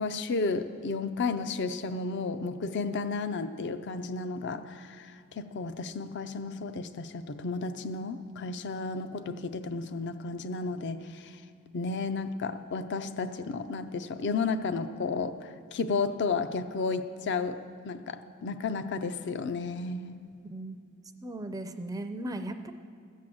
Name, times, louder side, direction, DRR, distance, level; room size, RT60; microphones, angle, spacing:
voice 1, 0.0-11.4 11.7-20.2, left 4 dB, 55° left, 12 dB, 0.5 m, -33 dB
voice 2, 20.5-22.7, right 1 dB, 15° right, 7 dB, 0.4 m, -37 dB
15.0 x 7.4 x 7.7 m, 2.3 s
head